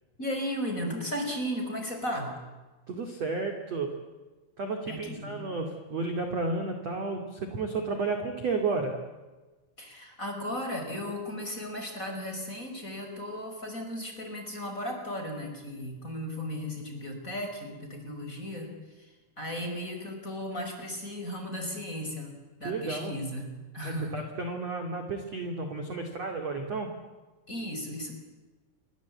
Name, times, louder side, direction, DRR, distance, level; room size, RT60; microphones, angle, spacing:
voice 1, 0.2-2.3 4.9-5.4 9.8-18.7 19.4-24.2 27.5-28.1, equal, 15° left, 3 dB, 5.0 m, -35 dB
voice 2, 2.9-4.0 4.6-9.0 22.6-23.1 23.8-26.9, right 3 dB, 40° right, 4 dB, 2.8 m, -32 dB
29.0 x 24.0 x 8.5 m, 1.2 s
omnidirectional pair, 5.9 m